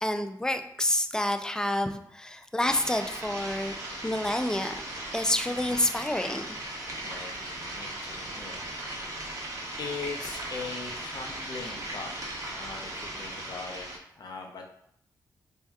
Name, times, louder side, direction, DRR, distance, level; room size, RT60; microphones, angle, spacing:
voice 1, 0.0-3.7 4.0-4.8 5.1-6.5, left 1 dB, 10° left, 8 dB, 0.3 m, -28 dB
sound 1, 2.6-14.0, right 1 dB, 45° right, 1.0 m, -38 dB
voice 2, 5.5-5.8 7.0-9.1 9.8-12.1 12.5-14.7, left 4 dB, 60° left, 2 dB, 0.7 m, -40 dB
4.4 x 2.7 x 2.3 m, 0.69 s
cardioid pair, 70°, 8 cm